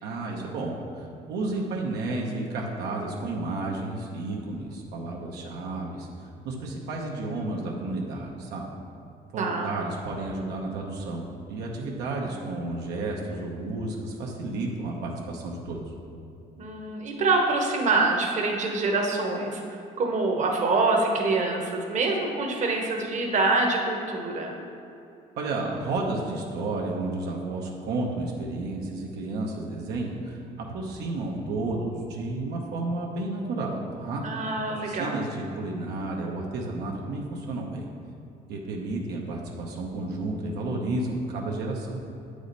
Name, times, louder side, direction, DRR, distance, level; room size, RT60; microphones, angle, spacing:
voice 1, 0.0-8.7 9.3-15.9 25.4-34.2 34.8-37.9 38.5-42.0, right 2 dB, 80° right, -1 dB, 0.9 m, -32 dB
voice 2, 9.4-9.7 16.6-19.6 20.0-24.6 34.2-35.1, right 3 dB, 45° right, 1 dB, 1.1 m, -25 dB
8.1 x 4.9 x 4.0 m, 2.8 s
cardioid pair, 110°, 17 cm